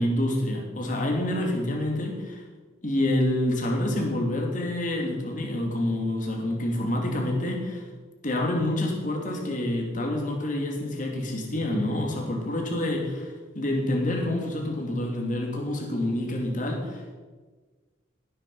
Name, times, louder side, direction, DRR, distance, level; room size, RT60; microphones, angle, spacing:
voice 1, 0.0-2.4 2.8-7.8 8.2-17.1, left 1 dB, 40° left, 1 dB, 2.8 m, -27 dB
18.0 x 9.8 x 5.6 m, 1.4 s
head